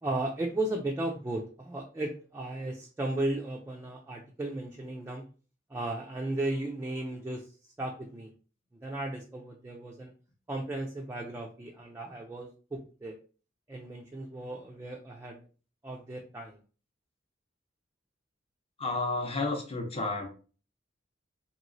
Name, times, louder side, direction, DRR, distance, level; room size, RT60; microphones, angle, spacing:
voice 1, 0.0-5.2 5.7-7.4 7.8-8.3 8.8-10.1 10.5-13.2 13.7-15.4 15.8-16.6, right 2 dB, 15° right, 0 dB, 0.3 m, -35 dB
voice 2, 18.8-20.3, left 3 dB, 30° left, 4 dB, 0.6 m, -31 dB
2.9 x 2.8 x 2.6 m, 0.38 s
head